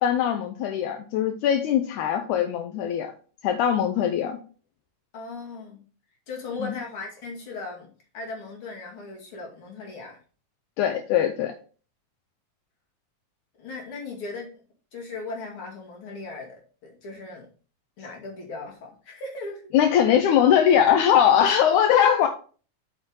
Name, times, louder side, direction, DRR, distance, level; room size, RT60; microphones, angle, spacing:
voice 1, 0.0-3.1 3.4-4.4 6.6-6.7 10.8-11.5 19.7-22.3, left 9 dB, 80° left, 6 dB, 2.1 m, -21 dB
voice 2, 5.1-5.8 6.3-10.2 13.6-14.5 14.9-17.5 18.0-19.7, left 3 dB, 45° left, -1 dB, 2.9 m, -37 dB
7.9 x 5.8 x 3.8 m, 0.39 s
omnidirectional pair, 3.5 m